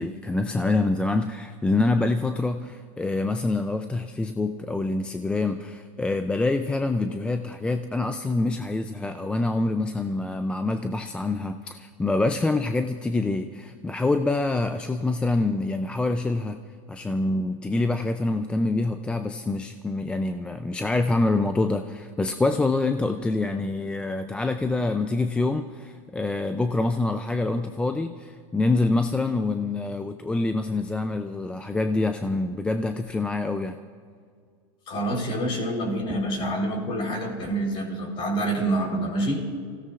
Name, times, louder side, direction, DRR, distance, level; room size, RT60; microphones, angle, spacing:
voice 1, 0.0-16.6 16.9-33.8, left 2 dB, 5° left, 7 dB, 0.3 m, -26 dB
voice 2, 34.9-39.4, right 1 dB, 35° left, 1 dB, 3.7 m, -27 dB
29.5 x 16.5 x 2.4 m, 2.1 s
supercardioid pair, 140°, 16 cm